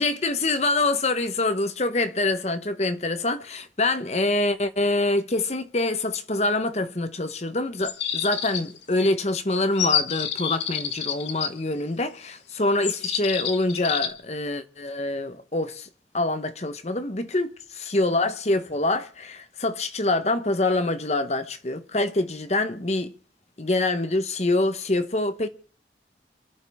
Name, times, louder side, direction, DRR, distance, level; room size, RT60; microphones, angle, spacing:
voice 1, 0.0-15.9 16.1-23.1 23.6-25.5, left 2 dB, 35° left, 1.0 m, -25 dB
sound 1, 7.8-8.8 9.8-11.5 12.8-14.1, left 9 dB, 85° left, 1.4 m, -28 dB
27.5 x 12.0 x 3.6 m
head